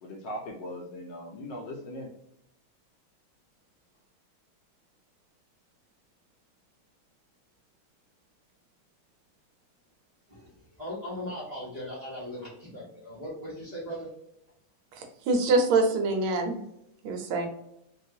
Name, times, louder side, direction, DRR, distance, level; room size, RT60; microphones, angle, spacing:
voice 1, 0.0-2.1, left 1 dB, 70° left, 1 dB, 1.1 m, -39 dB
voice 2, 10.3-14.1, equal, 60° right, -8 dB, 0.4 m, -39 dB
voice 3, 15.0-16.6 17.0-17.5, right 3 dB, 80° right, 4 dB, 1.5 m, -25 dB
3.4 x 2.3 x 2.7 m, 0.79 s
omnidirectional pair, 2.3 m